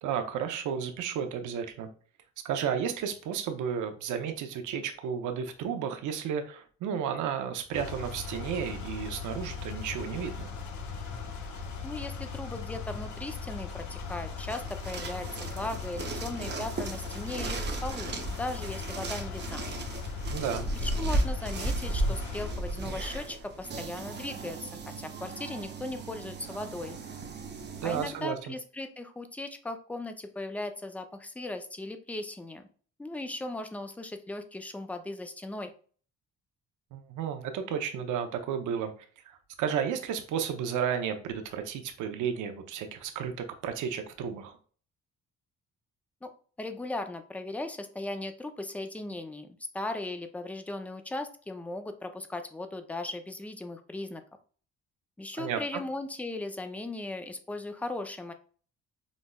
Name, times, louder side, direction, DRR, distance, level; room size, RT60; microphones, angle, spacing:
voice 1, 0.0-1.9 2.4-10.5 20.3-20.7 27.8-28.5 36.9-38.9 39.6-44.6 55.3-55.8, right 8 dB, 80° right, 7 dB, 0.6 m, -32 dB
sound 1, 7.7-22.8, left 5 dB, 75° left, 0.8 m, -39 dB
voice 2, 11.8-19.6 20.7-24.7 25.0-27.0 27.8-32.6 33.0-35.7 46.2-46.3 46.6-54.2 55.2-58.3, left 2 dB, 5° left, 7 dB, 0.4 m, -38 dB
sound 2, 14.5-28.2, right 2 dB, 35° right, 0.6 m, -35 dB
5.1 x 2.0 x 2.2 m, 0.42 s
cardioid pair, 90°, 30 cm